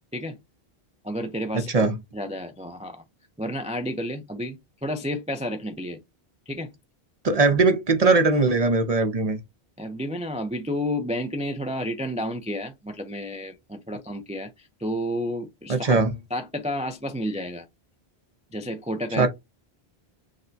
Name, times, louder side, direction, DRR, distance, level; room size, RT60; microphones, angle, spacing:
voice 1, 1.0-3.0 3.4-6.0 6.5-6.7 9.8-16.0 16.3-17.7 18.5-19.3, equal, 10° right, 0.3 m, -31 dB
voice 2, 1.5-1.9 7.2-9.4 15.7-16.1 19.2-19.3, right 3 dB, 45° right, 0.7 m, -20 dB
6.4 x 2.2 x 2.6 m
omnidirectional pair, 1.0 m